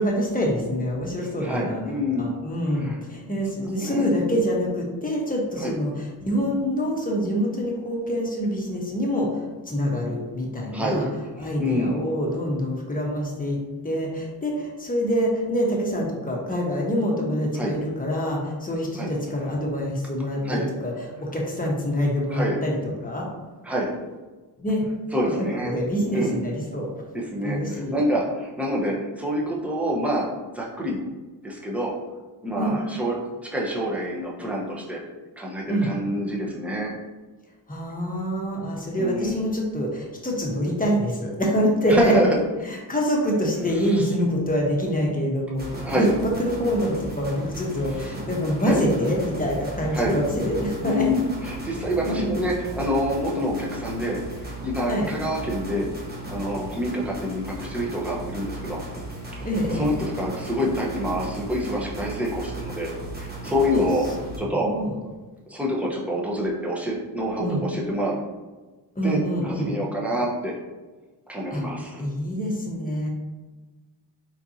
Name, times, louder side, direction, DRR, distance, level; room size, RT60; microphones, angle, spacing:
voice 1, 0.0-9.4 9.7-11.1 11.4-13.6 13.8-20.9 21.2-22.8 23.0-23.3 24.6-24.9 25.2-26.9 27.4-27.9 32.6-32.8 35.7-35.9 37.7-42.1 42.9-51.1 52.0-52.3 54.9-55.1 59.4-59.9 64.5-64.9 67.4-67.6 69.0-69.7 71.5-71.6 72.0-73.1, equal, 20° left, -2 dB, 1.3 m, -25 dB
voice 2, 1.4-2.3 2.7-3.2 3.8-4.1 5.6-5.8 10.7-11.1 11.4-12.0 17.5-17.7 19.0-19.1 20.4-20.7 22.3-22.6 23.6-23.9 25.1-25.7 26.1-26.3 27.1-30.3 30.5-31.0 31.4-31.9 32.4-35.0 35.4-36.9 39.0-39.4 41.9-42.3 43.7-44.1 45.8-46.1 47.9-48.1 48.6-48.8 49.9-50.2 50.8-55.9 56.3-58.8 59.3-62.9 63.2-64.1 64.4-64.7 65.5-68.1 69.0-70.5 71.3-72.0, equal, 5° right, -4 dB, 1.1 m, -27 dB
sound 1, 45.6-64.4, right 2 dB, 25° right, 1.3 m, -36 dB
4.3 x 4.0 x 2.8 m, 1.2 s
cardioid pair, 65°, 42 cm